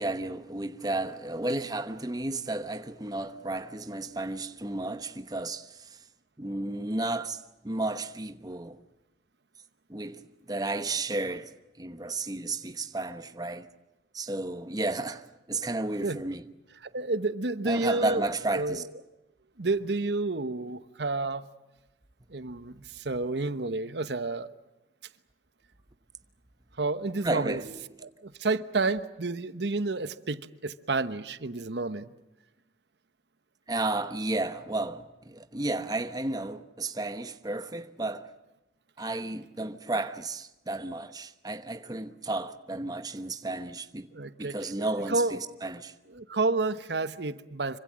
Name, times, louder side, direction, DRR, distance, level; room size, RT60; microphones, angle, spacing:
voice 1, 0.0-6.0 6.4-8.8 9.9-10.2 10.5-13.7 14.1-16.4 17.7-18.8 27.2-27.9 33.7-38.3 39.0-44.1 44.4-45.9, right 2 dB, 20° right, 1.0 m, -33 dB
voice 2, 16.8-18.3 18.5-18.9 19.6-21.4 22.3-24.5 26.8-27.6 28.0-32.1 44.1-45.4 46.1-47.8, right 3 dB, 70° right, 1.0 m, -30 dB
26.5 x 24.5 x 7.6 m
head